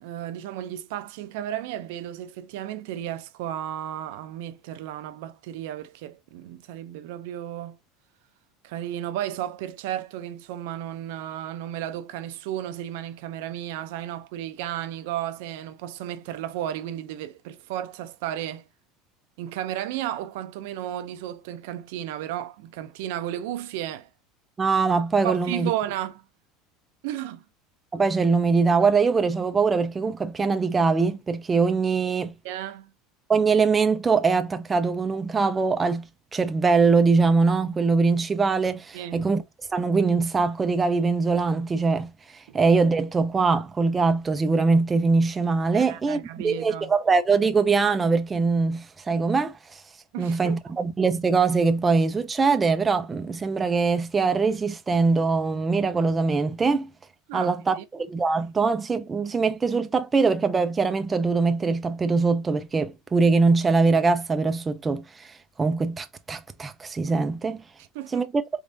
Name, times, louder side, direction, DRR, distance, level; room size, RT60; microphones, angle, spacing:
voice 1, 0.0-7.8 8.6-18.7 19.4-24.1 25.2-26.2 27.0-27.4 32.4-32.9 38.9-39.3 42.5-42.6 45.7-46.9 50.1-50.6 57.3-57.9 67.9-68.3, right 12 dB, 75° right, 0.4 m, -33 dB
voice 2, 24.6-25.7 27.9-32.3 33.3-36.0 36.3-39.4 39.7-42.1 42.5-49.8 50.2-56.9 57.3-65.3 65.6-67.6 68.1-68.3, right 4 dB, 15° right, 0.4 m, -22 dB
3.5 x 3.4 x 2.6 m
cardioid pair, 155°, 0 cm